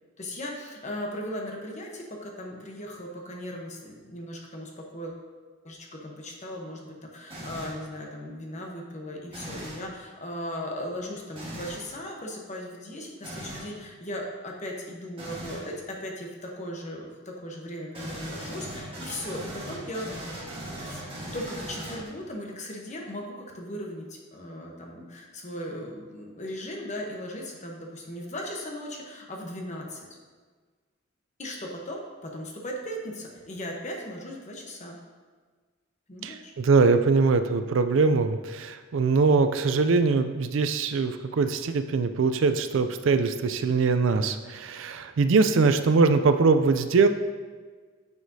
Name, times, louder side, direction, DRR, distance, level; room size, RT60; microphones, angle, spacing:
voice 1, 0.2-5.2 5.6-15.7 16.0-19.4 19.7-20.3 20.8-21.0 21.3-30.1 31.4-35.0 36.1-36.5, left 1 dB, 35° left, 0 dB, 1.0 m, -37 dB
sound 1, 7.3-7.8 9.3-9.9 11.3-11.8 13.2-13.7 15.2-15.7 17.9-22.3, right 1 dB, 25° right, 1.6 m, -38 dB
voice 2, 36.2-47.1, right 4 dB, 65° right, 10 dB, 0.4 m, -22 dB
9.5 x 4.9 x 2.7 m, 1.5 s
head